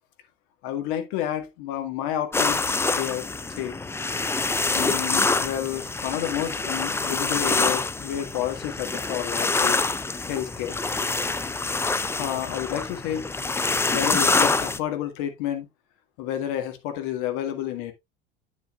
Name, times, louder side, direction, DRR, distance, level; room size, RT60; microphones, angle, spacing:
voice 1, 0.6-2.7 3.0-3.3 3.6-3.7 4.7-9.8 10.3-10.8 12.2-13.3 13.9-15.7 16.2-17.9, left 11 dB, 60° left, 1.9 m, -30 dB
sound 1, 2.3-14.8, left 3 dB, 10° left, 0.5 m, -26 dB
8.4 x 7.7 x 2.4 m
hypercardioid pair, 80°, 30 cm